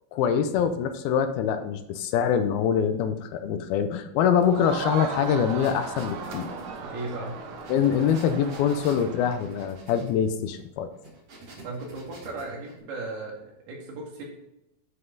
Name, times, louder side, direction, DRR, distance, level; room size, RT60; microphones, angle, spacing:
voice 1, 0.1-6.5 7.7-10.9, left 8 dB, 80° left, 9 dB, 2.5 m, -24 dB
Crowd, 4.4-9.7, right 4 dB, 65° right, 2.2 m, -36 dB
sound 1, 5.1-12.8, right 2 dB, 45° right, 2.5 m, -49 dB
voice 2, 6.8-7.4 11.6-14.2, right 2 dB, 85° right, -1 dB, 4.0 m, -36 dB
9.8 x 5.5 x 3.9 m, 0.86 s
omnidirectional pair, 4.4 m